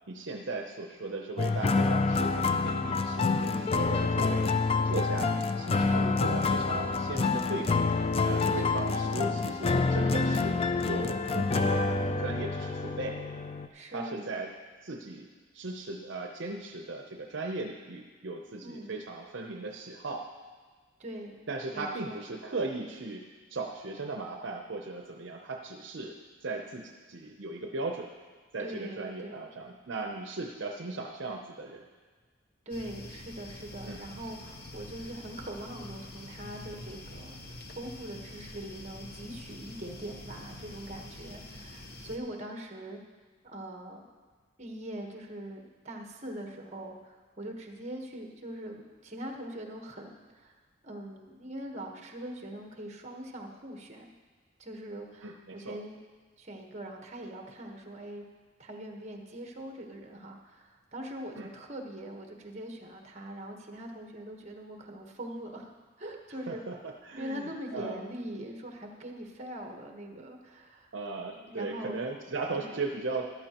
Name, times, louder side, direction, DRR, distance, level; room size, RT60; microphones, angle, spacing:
voice 1, 0.1-7.8 8.2-13.2 13.9-14.5 14.8-20.3 21.5-28.1 28.5-31.9 33.8-34.0 55.2-55.8 61.4-61.5 66.5-68.0 70.9-73.3, right 3 dB, 65° right, 2 dB, 0.7 m, -37 dB
sound 1, 1.4-13.7, left 4 dB, 30° left, 0.4 m, -27 dB
voice 2, 3.4-3.8 5.9-6.2 8.3-9.1 13.7-14.3 18.6-18.9 21.0-21.4 21.7-22.3 28.6-29.4 32.6-37.3 37.7-43.0 43.4-44.0 44.6-50.6 50.8-54.0 54.6-55.9 56.4-58.2 58.6-65.7 66.0-66.6 67.2-70.9 71.3-72.0 72.6-72.7, right 1 dB, 35° right, 2 dB, 1.2 m, -42 dB
sound 2, 32.7-42.2, left 1 dB, 50° left, 1.0 m, -46 dB
14.0 x 12.0 x 3.0 m, 1.4 s
head